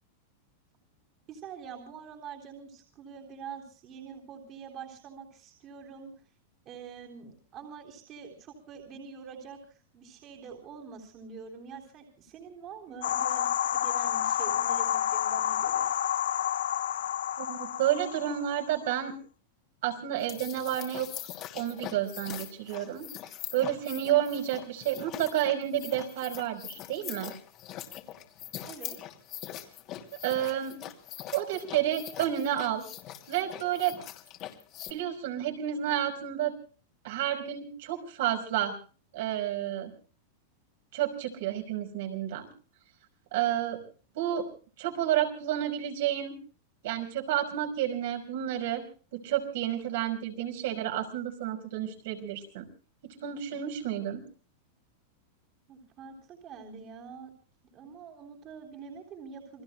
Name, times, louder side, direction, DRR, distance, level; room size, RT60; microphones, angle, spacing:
voice 1, 1.3-6.1 6.7-9.6 9.9-15.9 28.7-29.0 55.7-57.3 57.7-59.6, right 6 dB, 35° right, 2 dB, 3.7 m, -45 dB
sound 1, 13.0-18.7, left 10 dB, 85° left, 0.7 m, -29 dB
voice 2, 17.4-19.2 19.8-21.3 21.5-23.1 23.5-27.3 30.2-30.8 31.3-32.8 33.3-34.0 34.9-36.6 37.0-38.7 39.1-39.9 40.9-42.5 43.3-43.8 44.2-44.5 44.8-46.4 46.8-48.9 49.1-52.7 53.0-54.2, right 11 dB, 65° right, 4 dB, 5.3 m, -30 dB
sound 2, 20.2-34.9, left 12 dB, 40° left, 2.8 m, -42 dB
28.5 x 20.5 x 2.2 m, 0.39 s
supercardioid pair, 140°, 0 cm